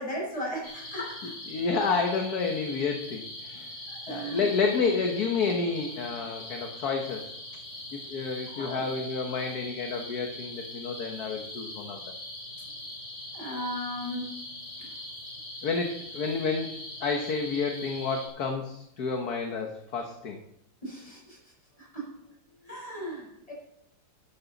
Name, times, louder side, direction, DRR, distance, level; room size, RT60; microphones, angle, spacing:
voice 1, 0.0-1.3 3.9-4.5 8.5-9.0 13.3-14.4 14.8-14.9 20.8-21.4 21.8-22.1 22.7-23.5, equal, 20° left, -3 dB, 6.0 m, -36 dB
sound 1, 0.6-18.3, left 1 dB, 40° left, 3.5 m, -42 dB
voice 2, 1.2-3.7 4.1-7.3 7.9-12.0 15.6-20.4, left 4 dB, 55° left, 3 dB, 1.6 m, -30 dB
13.0 x 11.5 x 4.0 m, 0.78 s
omnidirectional pair, 2.0 m